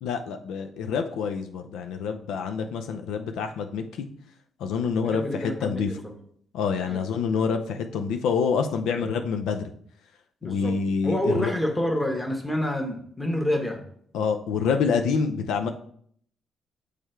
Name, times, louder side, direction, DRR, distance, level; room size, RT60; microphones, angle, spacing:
voice 1, 0.0-4.1 4.6-5.9 6.5-9.7 10.4-11.5 14.1-15.7, left 5 dB, 85° left, 6 dB, 0.5 m, -27 dB
voice 2, 5.1-6.2 6.9-7.0 9.0-9.1 10.4-10.7 11.0-13.8, left 1 dB, 10° left, 3 dB, 1.3 m, -28 dB
6.4 x 3.4 x 4.4 m, 0.63 s
cardioid pair, 90°, 0 cm